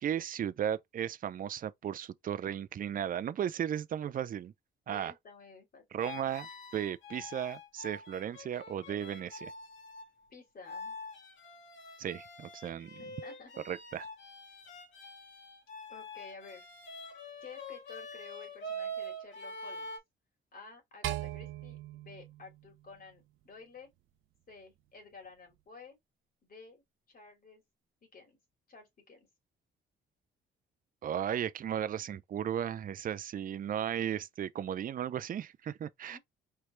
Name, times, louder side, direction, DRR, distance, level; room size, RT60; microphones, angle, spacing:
voice 1, 0.0-4.5 4.9-5.1 5.9-9.5 12.0-13.0 13.7-14.1 31.0-36.2, right 9 dB, 45° right, 0.5 m, -35 dB
voice 2, 4.9-5.8 10.3-11.0 12.9-13.5 15.9-16.6 17.4-19.9 20.5-23.9 24.5-26.0 26.4-26.8 27.1-27.6 28.0-28.4 28.7-29.3 36.1-36.2, left 4 dB, 45° left, 3.0 m, -52 dB
sound 1, 6.0-10.1 10.6-20.0, equal, 70° left, 1.8 m, -45 dB
sound 2, 21.0-23.4, right 14 dB, 85° right, 0.7 m, -40 dB
4.6 x 3.1 x 3.1 m
cardioid pair, 90°, 20 cm